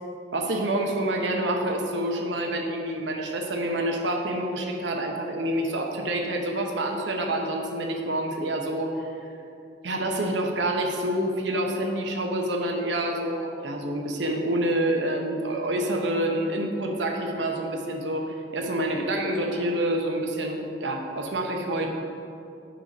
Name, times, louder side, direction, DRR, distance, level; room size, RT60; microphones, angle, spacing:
voice 1, 0.3-9.1 9.8-21.9, right 1 dB, 75° right, 2 dB, 1.0 m, -27 dB
7.6 x 5.6 x 5.4 m, 2.7 s
head